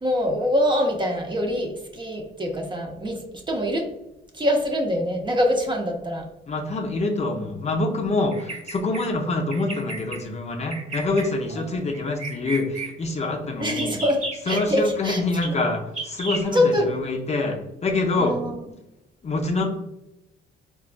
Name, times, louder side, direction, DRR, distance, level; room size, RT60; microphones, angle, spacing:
voice 1, 0.0-3.9 4.3-6.3 13.6-15.2 16.5-16.9 18.2-18.6, left 1 dB, 25° right, 2 dB, 0.6 m, -24 dB
voice 2, 6.5-13.9 14.5-18.4 19.2-19.7, left 2 dB, 35° left, 2 dB, 0.5 m, -26 dB
Bird vocalization bird call bird song, 8.3-9.1 9.5-10.2 10.7-11.3 11.9-12.9 13.7-14.6 15.4-15.5 15.9-16.4, right 2 dB, 40° right, 1.0 m, -33 dB
4.0 x 2.2 x 2.4 m, 0.92 s
cardioid pair, 90°, 20 cm